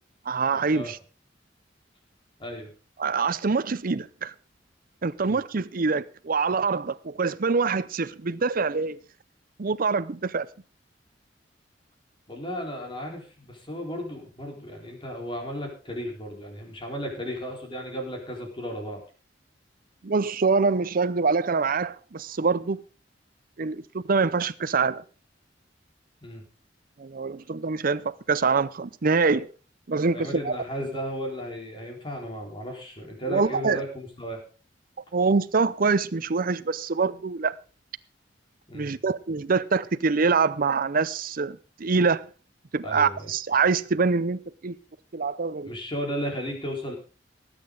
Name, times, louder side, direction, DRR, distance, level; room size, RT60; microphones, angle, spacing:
voice 1, 0.3-1.0 3.0-4.3 5.0-9.0 9.6-10.5 20.0-22.8 23.6-25.0 27.0-29.5 29.9-30.6 33.3-33.8 35.1-37.6 38.7-42.2 42.7-44.8 45.1-45.7, right 4 dB, 50° right, 0.6 m, -25 dB
voice 2, 2.4-2.7 5.2-5.4 12.3-19.0 26.2-26.4 30.0-34.4 38.7-39.0 42.8-43.3 45.6-46.9, equal, 30° left, 4.1 m, -34 dB
19.5 x 8.9 x 3.9 m
head